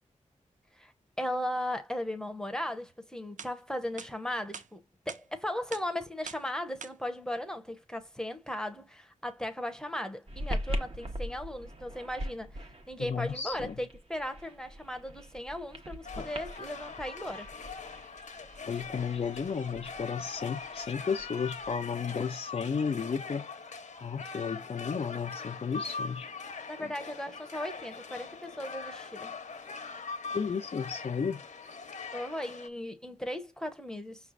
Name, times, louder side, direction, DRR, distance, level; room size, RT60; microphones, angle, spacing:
voice 1, 1.2-12.5 12.9-17.5 26.7-29.3 32.1-34.2, left 1 dB, 5° left, 0.9 m, -37 dB
sound 1, 2.9-3.0 3.4-3.5 4.0-4.1 4.5-4.7 5.1-5.2 5.7-5.9 6.3-6.5 6.8-6.9, right 7 dB, 75° right, 0.5 m, -43 dB
sound 2, 10.3-21.8, equal, 45° right, 1.2 m, -41 dB
voice 2, 13.0-13.7 16.2-16.3 18.7-23.5 24.0-26.3 26.8-26.9 30.3-31.4, left 6 dB, 50° left, 0.4 m, -33 dB
sound 3, 16.0-32.7, left 4 dB, 65° left, 0.9 m, -42 dB
5.7 x 3.2 x 2.5 m
wide cardioid pair, 85°, 13 cm